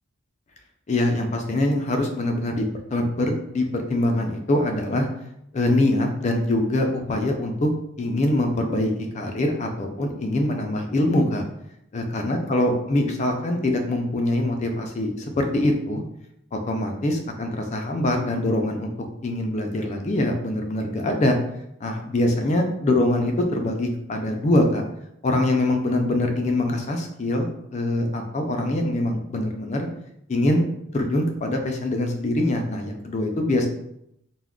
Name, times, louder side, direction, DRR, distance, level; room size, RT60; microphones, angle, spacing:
voice 1, 0.9-2.6 2.9-5.1 5.5-7.7 8.0-11.4 11.9-16.0 16.7-18.9 19.2-21.4 21.8-24.8 25.2-29.9 30.3-30.6 30.9-33.7, left 1 dB, 35° left, 3 dB, 0.3 m, -23 dB
2.3 x 2.1 x 3.5 m, 0.78 s
head